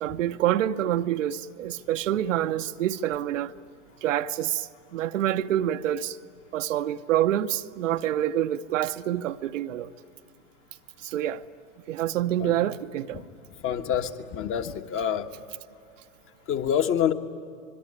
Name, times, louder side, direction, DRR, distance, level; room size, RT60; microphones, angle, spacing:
voice 1, 0.0-3.6 4.0-6.2 6.5-9.9 11.0-11.4 11.9-13.2, right 12 dB, 75° right, 0.8 m, -27 dB
voice 2, 13.6-15.3 16.5-17.1, left 9 dB, 35° left, 1.4 m, -26 dB
25.5 x 22.0 x 9.7 m
hypercardioid pair, 110°, 38 cm